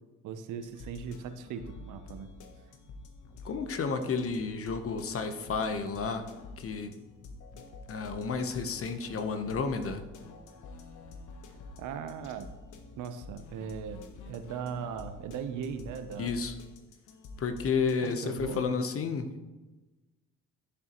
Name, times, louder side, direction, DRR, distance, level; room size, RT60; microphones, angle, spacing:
voice 1, 0.2-2.3 11.8-12.6 13.0-16.4 18.0-18.8, right 7 dB, 85° right, 9 dB, 0.8 m, -39 dB
Sexy Jazz Loop, 0.6-18.7, left 3 dB, 75° left, 1.0 m, -48 dB
voice 2, 3.4-6.3 6.6-6.9 7.9-10.0 16.2-16.5 17.4-19.3, left 5 dB, 50° left, 8 dB, 0.9 m, -31 dB
11.0 x 6.7 x 3.0 m, 1.1 s
cardioid pair, 90°, 30 cm